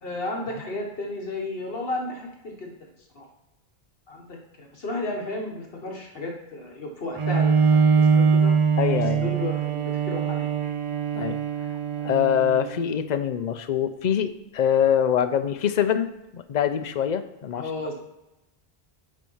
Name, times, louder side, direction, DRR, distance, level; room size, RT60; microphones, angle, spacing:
voice 1, 0.0-2.7 3.1-3.2 4.1-8.5 9.1-10.7 17.5-17.9, left 2 dB, 70° left, 1 dB, 1.5 m, -33 dB
Bowed string instrument, 7.2-12.8, right 6 dB, 40° right, 0.4 m, -22 dB
voice 2, 8.8-9.3 11.1-11.4 12.0-16.1 16.3-17.6, left 9 dB, 50° left, 10 dB, 0.7 m, -24 dB
9.2 x 4.5 x 5.5 m, 0.94 s
omnidirectional pair, 1.0 m